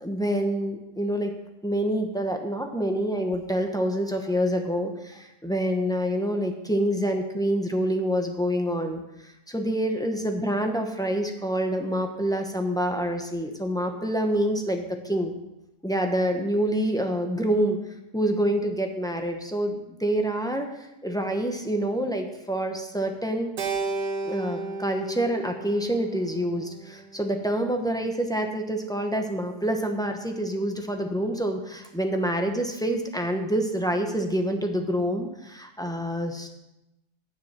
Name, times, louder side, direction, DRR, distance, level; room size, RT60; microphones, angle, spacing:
voice 1, 0.0-1.3 1.6-14.8 15.1-15.3 15.8-17.8 18.1-23.5 24.2-36.5, equal, 5° left, 3 dB, 0.6 m, -27 dB
Keyboard (musical), 23.6-28.0, right 3 dB, 90° right, 1.5 m, -34 dB
9.6 x 7.4 x 5.7 m, 0.92 s
omnidirectional pair, 1.7 m